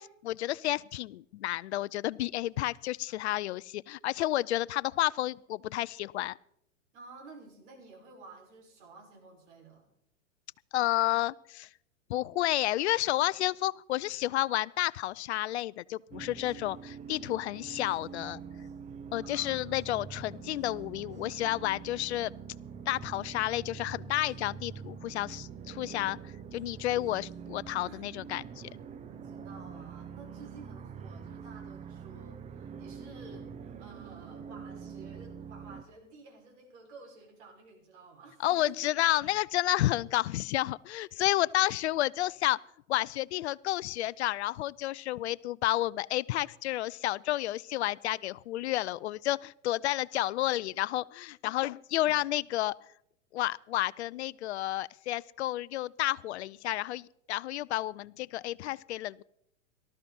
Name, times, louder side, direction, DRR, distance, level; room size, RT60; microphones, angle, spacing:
voice 1, 0.0-6.4 10.7-11.7 12.1-18.4 19.1-22.3 22.9-28.7 38.4-42.6 42.9-52.7 53.3-59.2, left 15 dB, 60° left, 21 dB, 0.5 m, -31 dB
voice 2, 6.9-9.9 19.2-20.0 27.8-28.0 29.0-38.9 41.2-41.3 41.9-42.1, right 4 dB, 60° right, 1 dB, 6.3 m, -52 dB
sound 1, 16.1-35.8, right 7 dB, 20° right, 0.7 m, -45 dB
18.5 x 13.0 x 4.3 m, 0.73 s
hypercardioid pair, 110°, 38 cm